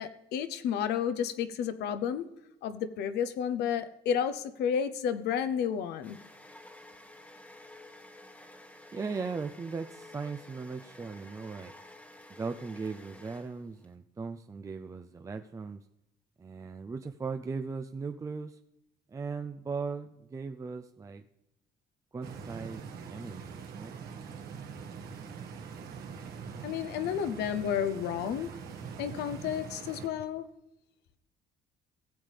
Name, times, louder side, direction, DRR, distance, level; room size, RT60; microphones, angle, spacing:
voice 1, 0.0-2.3 2.6-6.2 26.6-28.5 29.0-30.5, left 8 dB, 75° left, 12 dB, 0.8 m, -31 dB
sound 1, 5.2-13.9, left 1 dB, 10° left, 1.2 m, -52 dB
voice 2, 8.9-11.7 12.3-15.8 16.4-18.6 19.1-21.2 22.1-24.0, right 4 dB, 20° right, 6 dB, 0.4 m, -38 dB
Stream, 22.2-30.1, right 6 dB, 70° right, 1.6 m, -43 dB
17.5 x 7.3 x 3.4 m, 0.88 s
cardioid pair, 110°, 17 cm